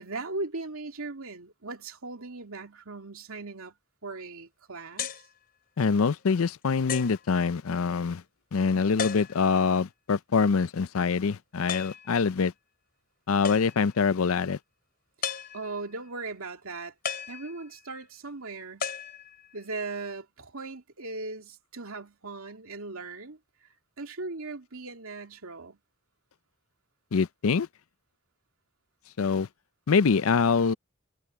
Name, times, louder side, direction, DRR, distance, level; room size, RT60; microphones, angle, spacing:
voice 1, 0.0-3.7 4.0-5.1 15.5-16.9 17.3-18.9 19.5-23.4 24.0-25.8, right 3 dB, 85° right, 2.6 m, -38 dB
sound 1, 5.0-5.3 6.0-6.1 6.9-7.3 9.0-9.6 11.7-12.1 13.4-14.0 15.2-15.9 17.0-17.9 18.8-19.6, left 6 dB, 45° left, 5.9 m, -35 dB
voice 2, 5.8-8.2 8.5-12.5 13.3-14.6 27.1-27.7 29.2-29.5 29.9-30.7, left 5 dB, 85° left, 0.5 m, -24 dB
head